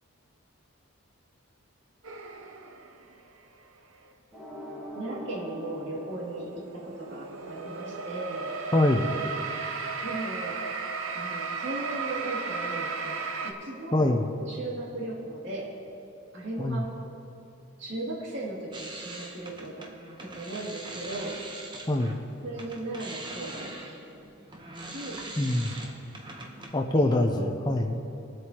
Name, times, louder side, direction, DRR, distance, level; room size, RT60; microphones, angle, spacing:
sound 1, 2.0-3.2 4.0-4.1 5.6-13.5, right 4 dB, 75° right, 0.8 m, -35 dB
sound 2, 4.3-7.3, equal, ahead, 1.5 m, -43 dB
voice 1, 4.9-8.6 10.0-10.8 11.1-14.1 14.5-15.7 16.3-16.9 17.8-19.9 20.2-21.4 22.4-24.0 24.9-25.9 26.9-27.5, right 2 dB, 60° right, -6 dB, 2.6 m, -37 dB
voice 2, 8.7-9.1 13.9-14.4 16.6-16.8 21.9-22.2 25.4-25.8 26.7-28.0, left 1 dB, 20° left, 3 dB, 0.6 m, -24 dB
sound 3, 18.7-22.2 22.5-26.8, right 2 dB, 20° right, 0.9 m, -42 dB
21.5 x 7.9 x 3.0 m, 2.7 s
head